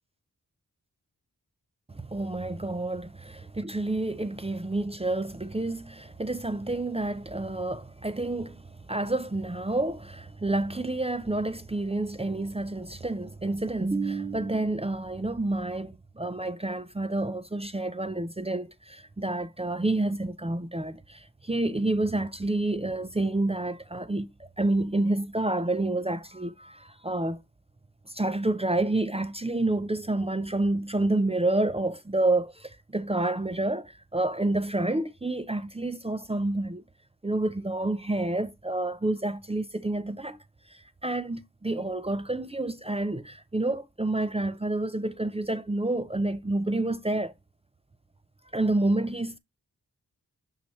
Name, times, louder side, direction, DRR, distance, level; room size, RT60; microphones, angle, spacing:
voice 1, 1.9-27.4 28.1-36.8 37.2-40.4 40.7-47.3 48.5-49.4, right 2 dB, 15° right, 0.5 m, -29 dB
5.9 x 5.6 x 3.1 m
cardioid pair, 45°, 35 cm